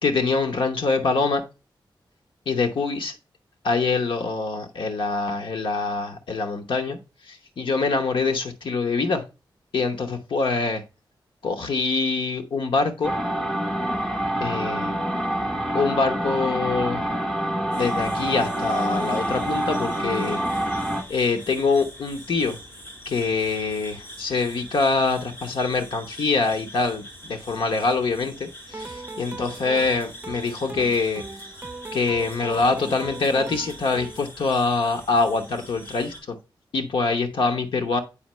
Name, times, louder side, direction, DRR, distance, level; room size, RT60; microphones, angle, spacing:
voice 1, 0.0-1.4 2.5-3.1 3.6-7.0 7.3-9.2 9.7-10.8 11.4-13.1 14.4-14.9 15.7-17.0 17.8-20.4 21.1-22.6 23.1-31.2 31.9-36.4 36.7-38.0, left 4 dB, 85° left, 5 dB, 0.9 m, -24 dB
sound 1, 13.0-21.0, right 1 dB, 5° left, 1.0 m, -26 dB
sound 2, 17.7-36.2, equal, 25° left, 3.6 m, -43 dB
sound 3, 28.7-34.3, right 3 dB, 25° right, 0.7 m, -39 dB
8.6 x 4.5 x 3.0 m, 0.29 s
wide cardioid pair, 135°, 8 cm